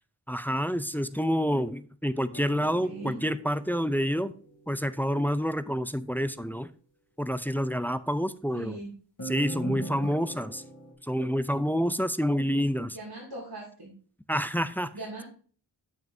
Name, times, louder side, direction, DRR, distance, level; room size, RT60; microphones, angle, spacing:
voice 1, 0.3-4.3 4.7-6.7 7.2-8.8 9.2-10.6 11.0-13.0 14.3-14.9, equal, 5° left, 13 dB, 0.4 m, -28 dB
sound 1, 2.3-4.9 9.2-10.9, right 2 dB, 45° left, 2.7 m, -40 dB
voice 2, 2.6-3.1 8.5-8.9 12.9-13.9 14.9-15.2, right 2 dB, 55° right, -4 dB, 2.5 m, -40 dB
9.5 x 7.3 x 2.7 m, 0.42 s
wide cardioid pair, 55°, 44 cm